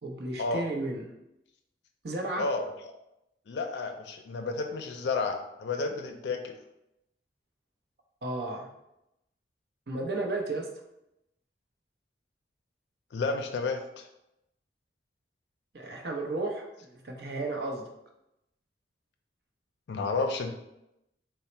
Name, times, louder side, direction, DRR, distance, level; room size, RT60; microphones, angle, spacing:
voice 1, 0.0-1.1 2.0-2.5 8.2-8.7 9.9-10.7 15.7-17.9, right 2 dB, 65° right, 2 dB, 0.6 m, -33 dB
voice 2, 2.3-2.7 3.5-6.5 13.1-14.1 19.9-20.5, left 3 dB, 75° left, 5 dB, 0.4 m, -31 dB
3.9 x 2.1 x 4.3 m, 0.87 s
head